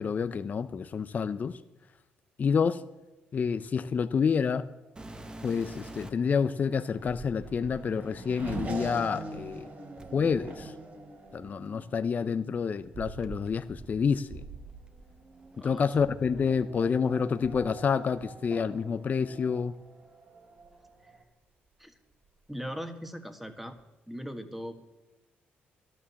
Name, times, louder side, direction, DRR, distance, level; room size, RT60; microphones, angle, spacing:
voice 1, 0.0-1.6 2.4-2.8 3.3-4.7 5.4-9.6 10.1-10.7 11.3-14.4 15.6-19.7, left 6 dB, 40° left, 11 dB, 0.6 m, -28 dB
sound 1, 5.0-6.4 7.2-7.3 10.0-12.1 13.2-16.9 17.2-18.3 19.0-19.2 19.8-19.9 20.6-21.7 21.9-22.5 23.8-23.9, right 2 dB, 20° right, 1.3 m, -49 dB
Race car auto racing / Accelerating revving vroom, 5.1-21.2, right 2 dB, 45° right, 3.1 m, -45 dB
voice 2, 22.5-23.7 24.1-24.7, equal, 5° right, 8 dB, 1.6 m, -39 dB
12.0 x 9.9 x 7.0 m, 1.0 s
cardioid pair, 80°, 4 cm